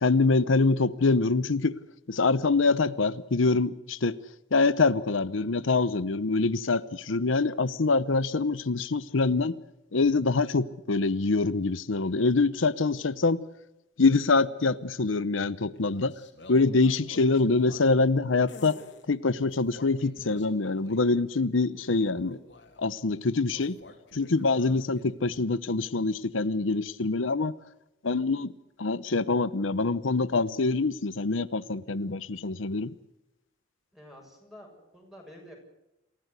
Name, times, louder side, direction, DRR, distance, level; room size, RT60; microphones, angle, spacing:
voice 1, 0.0-1.8 2.1-4.2 4.5-9.6 9.9-13.4 14.0-16.1 16.5-18.7 19.1-22.4 22.8-23.8 24.1-27.5 28.0-28.5 28.8-32.9, left 3 dB, 85° left, 0.8 m, -25 dB
sound 1, 15.7-18.1 18.5-19.0 19.4-21.1 21.7-22.9 23.5-25.4, left 2 dB, 65° left, 3.5 m, -50 dB
voice 2, 33.9-35.6, equal, ahead, 7.1 m, -49 dB
27.5 x 15.0 x 8.1 m
head